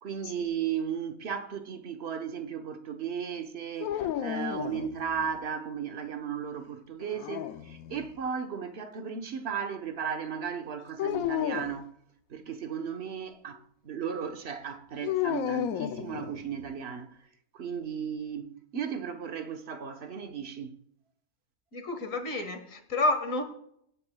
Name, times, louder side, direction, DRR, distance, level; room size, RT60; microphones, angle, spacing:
voice 1, 0.0-11.9 12.3-17.2 17.5-20.8, right 7 dB, 50° right, 1.1 m, -35 dB
sound 1, 3.8-5.4 7.0-8.1 11.0-11.8 15.0-16.7, left 11 dB, 75° left, 1.1 m, -33 dB
voice 2, 21.7-23.4, left 2 dB, 60° left, 1.9 m, -29 dB
24.5 x 9.1 x 2.2 m
omnidirectional pair, 1.6 m